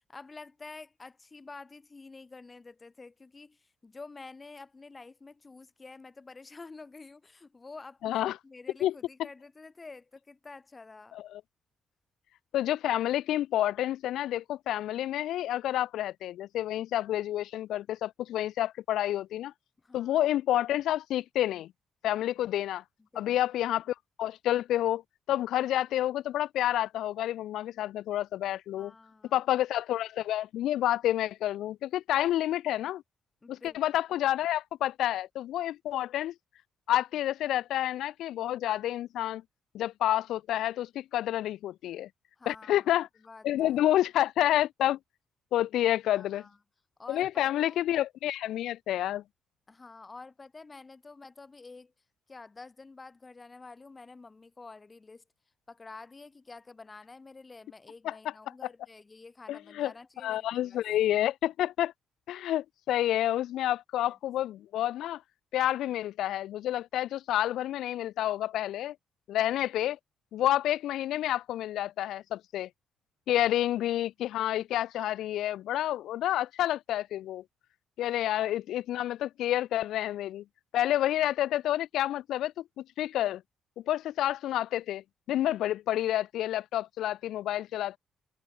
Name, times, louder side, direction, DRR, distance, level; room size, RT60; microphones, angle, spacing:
voice 1, 0.1-11.2 19.8-20.2 23.1-23.3 28.7-29.3 33.4-33.8 42.4-42.9 43.2-43.8 46.1-46.6 47.0-47.9 49.7-51.9 52.3-55.2 55.7-60.8 64.1-64.2, left 3 dB, 25° left, 6.0 m, -49 dB
voice 2, 8.0-8.4 8.8-8.9 11.1-11.4 12.5-19.5 19.9-21.7 22.0-22.8 23.2-25.0 25.3-28.9 29.3-33.0 33.5-36.3 36.9-39.4 39.7-42.1 42.5-43.1 43.4-45.0 45.5-46.4 47.1-49.2 58.0-58.1 59.5-59.9 60.2-61.9 62.3-65.2 65.5-69.0 69.3-70.0 70.3-72.7 73.3-77.4 78.0-80.4 80.7-83.4 83.9-88.0, left 13 dB, 80° left, 0.4 m, -29 dB
cardioid pair, 90°, 0 cm